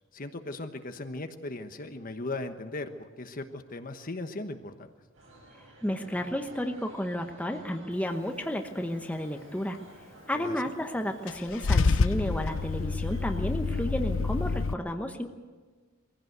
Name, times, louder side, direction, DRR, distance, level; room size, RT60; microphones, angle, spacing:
voice 1, 0.1-4.9 10.3-10.7, left 2 dB, 45° left, 8 dB, 1.2 m, -38 dB
sound 1, 5.1-13.9, right 1 dB, 75° right, 7.6 m, -52 dB
voice 2, 5.8-9.8 10.3-15.3, left 1 dB, 5° left, 5 dB, 1.0 m, -32 dB
Car / Engine starting / Idling, 11.3-14.7, left 4 dB, 70° left, 0.6 m, -27 dB
21.5 x 15.5 x 8.1 m, 1.4 s
head